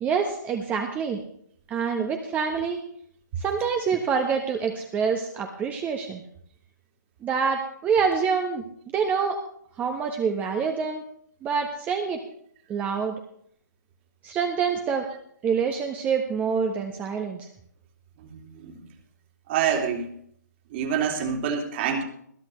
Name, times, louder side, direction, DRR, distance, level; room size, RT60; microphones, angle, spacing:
voice 1, 0.0-1.2 1.7-2.9 3.4-6.2 7.2-8.6 8.9-9.4 9.8-11.0 11.4-12.2 12.7-13.1 14.2-15.1 15.4-17.5, right 6 dB, 15° right, 4 dB, 1.1 m, -26 dB
voice 2, 18.2-18.8 19.5-20.1 20.7-22.0, right 7 dB, 35° right, 2 dB, 2.9 m, -27 dB
21.0 x 12.0 x 3.2 m, 0.67 s
figure-of-eight pair, 135°, 10 cm